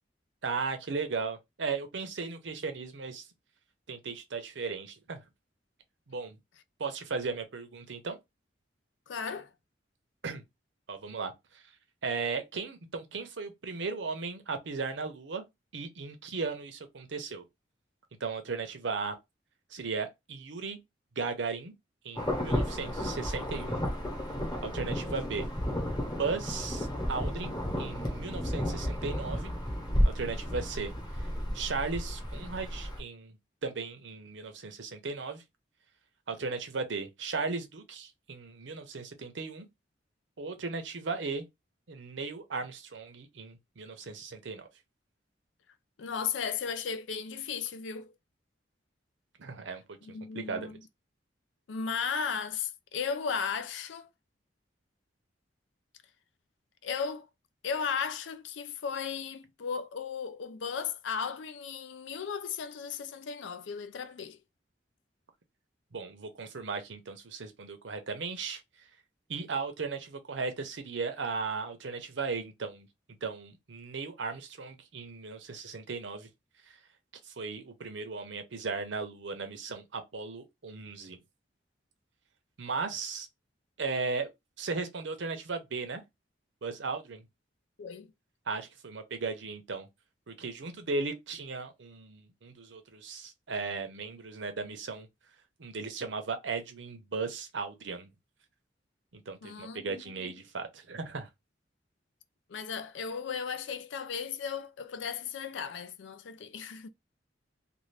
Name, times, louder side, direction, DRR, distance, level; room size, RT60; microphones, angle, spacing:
voice 1, 0.4-3.2 3.9-5.2 6.1-6.4 6.8-8.2 10.2-10.4 10.9-11.6 12.0-15.4 15.7-17.4 18.2-19.2 19.7-20.8 21.2-21.7 22.0-23.8 24.6-25.5 26.2-29.5 30.0-31.3 31.5-33.4 33.6-35.4 36.3-39.7 40.4-41.5 41.9-44.7 49.4-50.0 50.3-50.8 65.9-68.6 69.3-72.9 73.2-76.3 76.7-76.8 77.2-81.2 82.6-83.3 83.8-84.3 84.6-86.0 86.6-87.3 88.5-89.9 90.3-95.1 95.6-98.1 99.1-101.3, right 4 dB, 80° right, 0.7 m, -36 dB
voice 2, 9.1-9.5 46.0-48.1 50.0-50.8 51.7-54.1 56.8-57.3 57.6-64.4 87.8-88.1 99.4-100.3 102.5-106.9, left 6 dB, 85° left, 0.4 m, -35 dB
Insect / Thunder / Rain, 22.2-33.0, equal, 25° left, 1.0 m, -32 dB
2.6 x 2.5 x 3.2 m
head